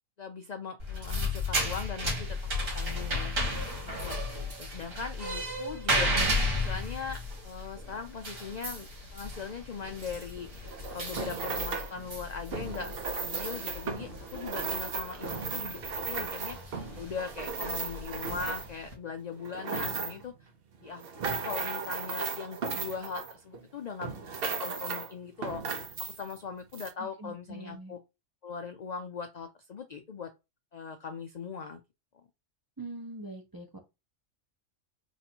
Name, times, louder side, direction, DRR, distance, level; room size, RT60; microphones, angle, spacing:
voice 1, 0.2-3.3 3.8-16.6 17.0-20.5 20.8-28.0 28.4-30.3 30.7-31.8, left 5 dB, 65° left, 6 dB, 0.4 m, -40 dB
sound 1, 0.8-18.9, left 1 dB, 85° right, 2.2 m, -34 dB
sound 2, 10.5-12.0 12.5-18.9 19.3-20.3 20.8-23.7 24.0-25.1 25.4-26.4 26.7-26.9, right 4 dB, 55° right, 0.9 m, -36 dB
voice 2, 27.0-27.9 32.8-33.8, right 2 dB, 20° right, 2 dB, 0.6 m, -43 dB
4.0 x 2.6 x 4.3 m, 0.25 s
omnidirectional pair, 1.3 m